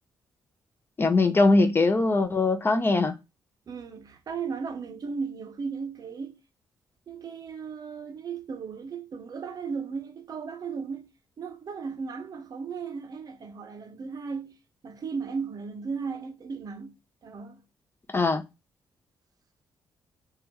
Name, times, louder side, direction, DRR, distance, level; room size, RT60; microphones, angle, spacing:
voice 1, 1.0-3.1 18.1-18.4, left 3 dB, 25° left, 0.4 m, -21 dB
voice 2, 3.7-6.4 7.1-14.6 14.8-17.0 17.2-17.6, right 5 dB, 50° right, 0.5 m, -36 dB
2.9 x 2.3 x 3.3 m
cardioid pair, 90°, 8 cm